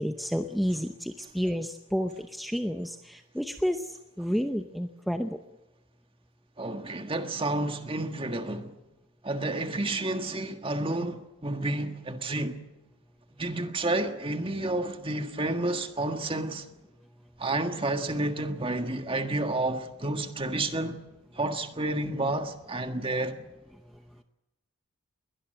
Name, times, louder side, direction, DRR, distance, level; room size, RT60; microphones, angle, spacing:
voice 1, 0.0-3.8 4.2-5.4, equal, ahead, 0.7 m, -30 dB
voice 2, 6.6-8.7 9.2-12.6 13.4-16.6 17.4-21.0 21.3-23.4, right 2 dB, 25° right, 1.6 m, -30 dB
22.0 x 18.5 x 7.8 m
head